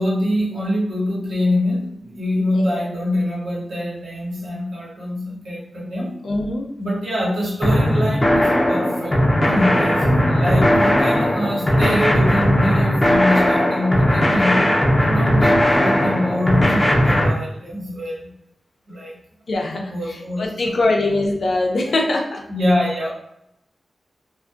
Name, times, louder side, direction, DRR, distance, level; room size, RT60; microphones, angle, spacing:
voice 1, 0.0-6.1 6.8-14.7 15.0-18.3 18.9-19.2 19.7-20.7 22.5-23.1, left 1 dB, 80° right, -4 dB, 0.9 m, -24 dB
voice 2, 2.5-2.9 6.2-6.7 19.5-22.4, left 2 dB, 75° left, 1 dB, 0.5 m, -22 dB
sound 1, 7.6-17.3, equal, 35° left, 0.6 m, -17 dB
2.4 x 2.1 x 2.5 m, 0.80 s
cardioid pair, 50°, 0 cm